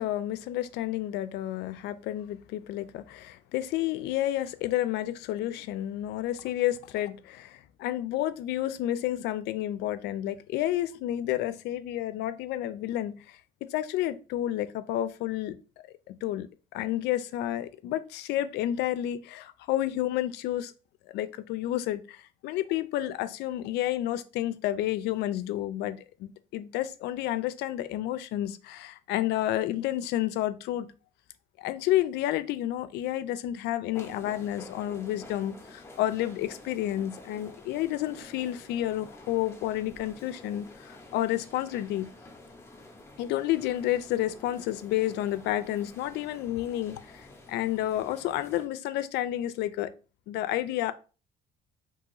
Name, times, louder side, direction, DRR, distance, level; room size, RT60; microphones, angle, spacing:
voice 1, 0.0-13.4 13.7-15.6 16.1-16.5 16.7-20.7 21.1-30.9 31.6-42.1 43.2-49.9 50.3-50.9, left 13 dB, 80° left, 0.4 m, -30 dB
sound 1, 33.9-48.7, left 2 dB, 15° left, 0.6 m, -49 dB
2.8 x 2.7 x 3.8 m
cardioid pair, 110°, 17 cm